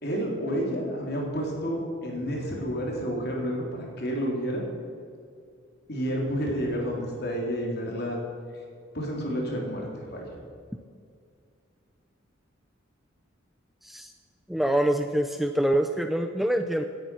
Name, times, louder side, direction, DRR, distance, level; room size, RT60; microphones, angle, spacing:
voice 1, 0.0-4.6 5.9-8.2 8.9-10.4, equal, 50° left, -1 dB, 3.5 m, -30 dB
voice 2, 14.5-16.9, right 1 dB, ahead, 6 dB, 0.5 m, -25 dB
17.5 x 9.5 x 6.2 m, 2.2 s
head